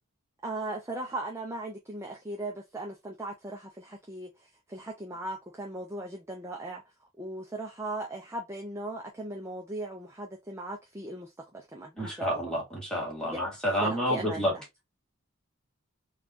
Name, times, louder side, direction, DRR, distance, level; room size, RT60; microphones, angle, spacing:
voice 1, 0.4-6.8 7.2-12.5 13.2-13.4 13.8-14.6, right 2 dB, 15° right, 0.5 m, -38 dB
voice 2, 12.0-14.5, equal, 5° left, 1.7 m, -29 dB
4.1 x 2.4 x 2.6 m
head